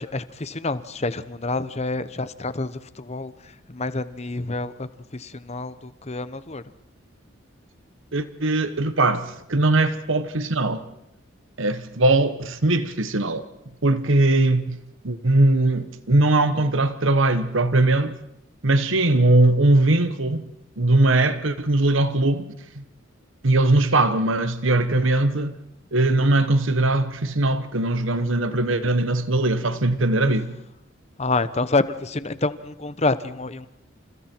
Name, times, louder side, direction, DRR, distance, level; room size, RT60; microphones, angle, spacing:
voice 1, 0.0-3.3 3.7-6.6 31.2-33.7, left 3 dB, 30° left, 0.9 m, -27 dB
voice 2, 8.1-10.8 11.6-13.4 13.8-14.8 15.0-18.1 18.6-20.5 20.8-22.8 23.4-25.5 25.9-30.5, right 2 dB, 70° right, 1.3 m, -20 dB
29.5 x 28.0 x 4.6 m
head